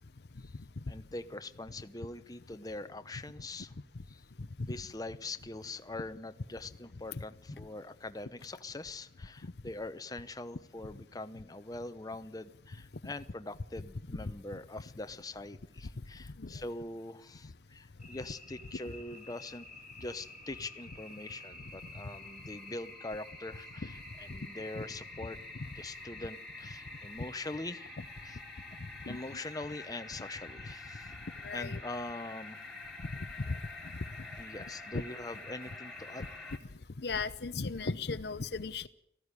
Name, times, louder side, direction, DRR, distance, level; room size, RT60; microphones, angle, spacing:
voice 1, 0.9-3.7 4.1-4.2 4.6-19.7 20.0-23.9 24.2-25.4 25.7-27.9 28.2-28.4 29.0-31.2 31.5-32.6 34.4-36.3, left 2 dB, 20° left, 10 dB, 0.9 m, -43 dB
sound 1, 18.0-36.6, left 2 dB, ahead, 2.3 m, -48 dB
voice 2, 31.4-31.8 33.5-33.6 34.9-35.0 37.0-38.9, left 4 dB, 65° left, 13 dB, 0.7 m, -36 dB
18.5 x 15.0 x 9.8 m, 0.76 s
head